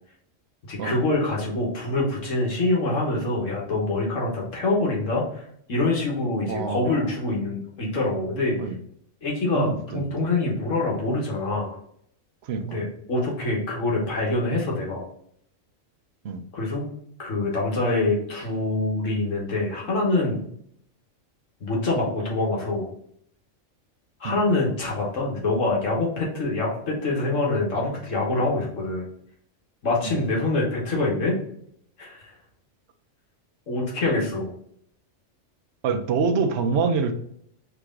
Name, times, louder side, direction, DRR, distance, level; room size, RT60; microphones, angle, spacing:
voice 1, 0.7-5.4 5.7-8.6 9.2-11.7 12.6-15.0 16.5-16.9 17.2-20.4 21.6-22.9 24.2-29.1 29.8-31.4 32.0-32.3 33.7-34.5, left 2 dB, 75° left, -2 dB, 1.6 m, -25 dB
voice 2, 6.5-7.1 8.6-8.8 9.5-10.3 12.4-12.8 16.2-16.4 24.2-24.4 30.0-30.2 35.8-37.1, right 5 dB, 60° right, 7 dB, 0.8 m, -26 dB
4.6 x 3.0 x 3.6 m, 0.68 s
omnidirectional pair, 1.3 m